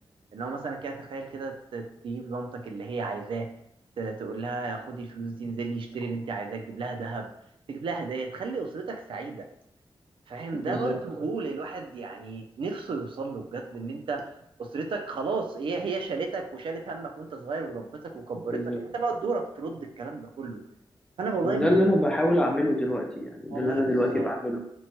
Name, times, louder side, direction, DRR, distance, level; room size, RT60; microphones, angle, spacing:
voice 1, 0.3-3.5 4.0-7.3 7.7-9.5 10.3-14.3 14.6-20.6 21.2-21.9 23.5-23.8 24.1-24.3, right 4 dB, 70° right, 3 dB, 0.4 m, -33 dB
voice 2, 10.5-10.9 18.5-18.8 21.4-24.6, equal, 10° left, 0 dB, 0.4 m, -25 dB
2.9 x 2.2 x 2.8 m, 0.75 s
wide cardioid pair, 170°, 9 cm